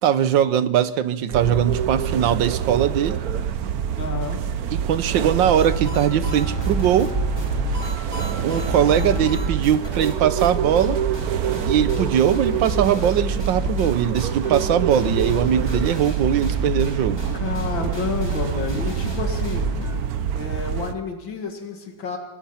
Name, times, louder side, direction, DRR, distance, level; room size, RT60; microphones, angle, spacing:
voice 1, 0.0-3.2 4.7-7.1 8.4-11.0 11.7-17.2 17.8-17.9, right 9 dB, 80° right, 14 dB, 1.6 m, -21 dB
sound 1, 1.3-20.9, right 8 dB, 60° right, 1.2 m, -26 dB
voice 2, 3.9-4.4 8.9-9.2 17.4-19.6 20.3-22.2, left 5 dB, 90° left, 4 dB, 2.8 m, -30 dB
sound 2, 5.6-10.1 10.4-10.5 10.8-20.0, equal, 10° left, 4.6 m, -30 dB
sound 3, 6.2-11.9, right 5 dB, 40° right, 2.0 m, -44 dB
26.5 x 20.5 x 5.8 m, 1.1 s
omnidirectional pair, 2.0 m